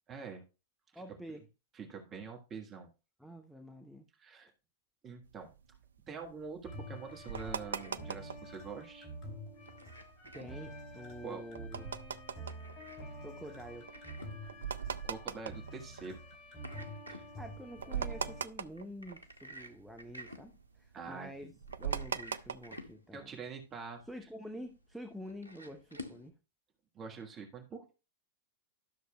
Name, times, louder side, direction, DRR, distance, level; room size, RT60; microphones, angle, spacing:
voice 1, 0.1-0.4 0.9-1.0 1.7-2.9 4.2-4.5 5.0-5.5 6.1-9.1 11.2-11.4 15.0-16.2 17.1-17.3 20.9-21.3 23.1-24.0 26.9-27.9, right 5 dB, 25° right, 1.5 m, -45 dB
voice 2, 0.9-1.4 3.2-4.0 10.3-11.9 13.2-13.9 17.4-21.5 21.8-23.3 24.0-26.3, equal, ahead, 0.8 m, -47 dB
sound 1, 5.3-8.6 9.0-9.1 9.2-9.5 10.0-16.7 17.1-17.2 17.5-19.6 19.9-22.9, right 7 dB, 70° right, 0.4 m, -41 dB
sound 2, 6.6-18.4, equal, 35° left, 2.9 m, -48 dB
sound 3, 6.8-26.3, equal, 85° left, 1.0 m, -54 dB
12.5 x 6.4 x 2.3 m
figure-of-eight pair, 90°, 0 cm